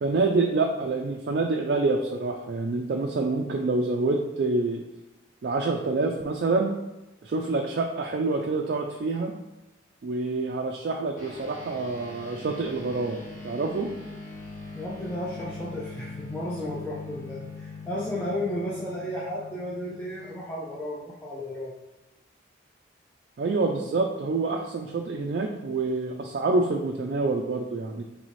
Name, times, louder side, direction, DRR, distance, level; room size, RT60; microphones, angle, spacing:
voice 1, 0.0-4.8 5.4-6.7 7.2-9.3 10.0-13.2 13.4-13.9 23.4-28.0, right 3 dB, 55° right, 2 dB, 0.3 m, -27 dB
sound 1, 11.2-20.9, left 3 dB, 40° left, 1.2 m, -42 dB
voice 2, 14.7-21.7, left 1 dB, 10° left, -6 dB, 0.5 m, -33 dB
4.0 x 3.4 x 3.1 m, 1.0 s
head